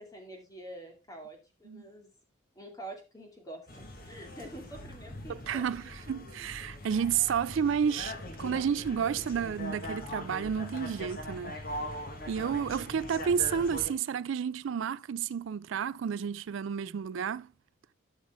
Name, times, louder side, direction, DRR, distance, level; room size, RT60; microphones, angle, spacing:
voice 1, 0.0-2.1 2.5-5.7, right 1 dB, 20° left, 2.5 m, -46 dB
sound 1, 3.7-13.9, left 1 dB, 45° left, 1.7 m, -41 dB
voice 2, 5.3-11.8 12.3-17.5, right 7 dB, 70° right, 0.3 m, -31 dB
12.0 x 6.2 x 3.6 m
head